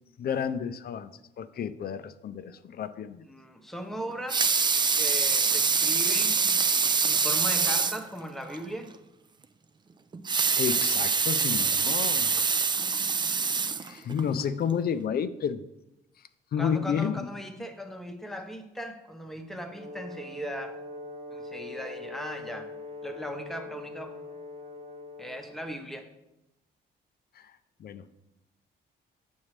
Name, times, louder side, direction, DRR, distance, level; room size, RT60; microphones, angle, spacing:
voice 1, 0.2-1.1 1.4-3.2 10.6-12.4 13.8-15.7 16.5-17.3 27.4-27.5 27.8-28.0, left 7 dB, 50° left, 12 dB, 0.5 m, -31 dB
voice 2, 3.2-4.6 4.9-6.6 7.0-8.9 16.6-20.8 21.3-22.7 23.0-24.2 25.2-26.0, equal, ahead, 4 dB, 0.9 m, -38 dB
Water tap faucet / Sink (filling or washing) / Liquid, 4.1-8.1 8.5-8.6 8.9-9.0 10.1-14.3 14.9-15.0, right 5 dB, 25° right, 0.4 m, -25 dB
Brass instrument, 19.7-25.7, left 2 dB, 40° right, 1.1 m, -42 dB
7.2 x 6.1 x 3.2 m, 0.88 s
cardioid pair, 90°, 20 cm